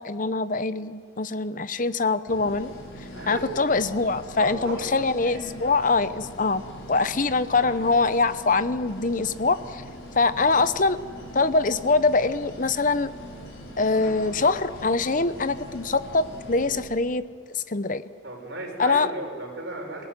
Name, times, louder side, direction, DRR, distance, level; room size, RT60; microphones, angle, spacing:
voice 1, 0.0-2.7 3.3-6.6 6.9-9.8 10.1-11.0 11.3-13.1 13.8-17.2 17.5-18.0 18.8-19.1, left 3 dB, 40° left, 13 dB, 0.8 m, -23 dB
sound 1, 2.3-16.8, equal, 85° left, 6.7 m, -41 dB
voice 2, 4.4-5.1 10.4-10.5 18.2-20.1, right 1 dB, 60° right, 0 dB, 5.9 m, -35 dB
26.5 x 18.0 x 9.6 m, 2.1 s
head